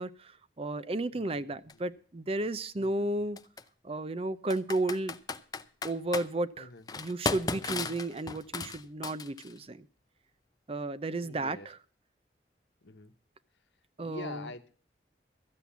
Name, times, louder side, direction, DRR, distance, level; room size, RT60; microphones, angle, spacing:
voice 1, 0.0-3.4 3.8-5.2 5.8-6.7 7.0-9.9 10.7-11.8 14.0-14.5, right 2 dB, 35° right, 15 dB, 0.6 m, -33 dB
voice 2, 1.1-1.8 2.8-3.3 6.6-7.1 11.2-11.7 12.8-13.1 14.0-14.7, left 3 dB, 90° left, 9 dB, 1.1 m, -46 dB
Computer keyboard, 1.7-1.8 3.4-3.6 4.5-6.3 6.9-9.6, left 4 dB, 20° left, 0.6 m, -35 dB
14.0 x 7.6 x 7.0 m, 0.42 s
head